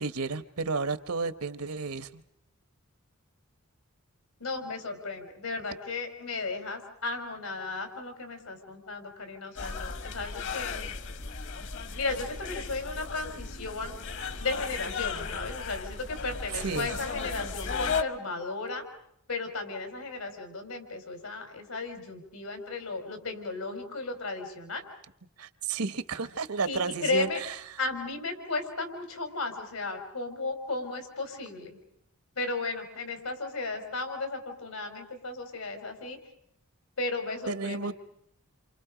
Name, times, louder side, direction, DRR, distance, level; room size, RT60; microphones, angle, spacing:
voice 1, 0.0-2.2 16.5-17.0 25.4-27.8 37.5-37.9, right 4 dB, 80° right, 13 dB, 1.2 m, -32 dB
voice 2, 4.4-10.8 12.0-13.9 14.4-18.8 19.3-24.8 26.6-27.4 27.8-31.8 32.4-36.2 37.0-37.9, left 3 dB, 85° left, 6 dB, 4.6 m, -35 dB
sound 1, 9.5-18.0, left 5 dB, 55° left, 1.1 m, -35 dB
29.0 x 27.5 x 5.1 m, 0.75 s
head